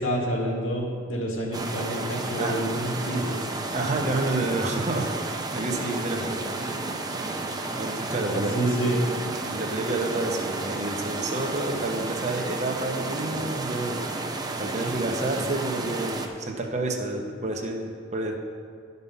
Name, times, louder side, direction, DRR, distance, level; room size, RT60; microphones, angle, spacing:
voice 1, 0.0-3.5 8.1-9.0, right 1 dB, 85° left, -2 dB, 2.0 m, -28 dB
sound 1, 1.5-16.3, right 2 dB, 20° right, 0.7 m, -32 dB
voice 2, 3.7-6.4 7.8-8.6 9.5-14.0 14.6-18.4, right 2 dB, 35° right, 2 dB, 1.0 m, -29 dB
11.5 x 5.5 x 5.6 m, 2.2 s
head